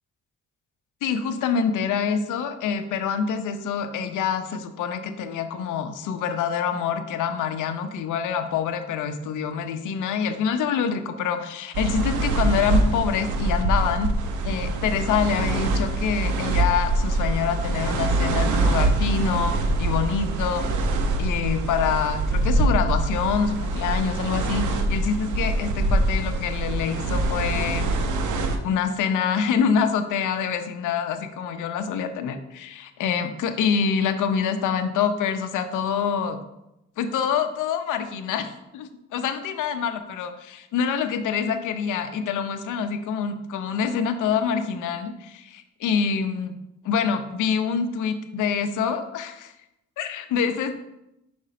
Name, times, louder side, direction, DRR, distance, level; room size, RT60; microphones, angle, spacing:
voice 1, 1.0-14.1 14.4-20.6 21.2-28.0 28.6-36.4 37.0-46.6 46.8-49.5 50.0-50.8, left 7 dB, 80° left, 8 dB, 0.8 m, -26 dB
sound 1, 11.7-28.6, right 2 dB, 75° right, 0.9 m, -24 dB
5.5 x 5.2 x 5.0 m, 0.88 s
cardioid pair, 90°, 30 cm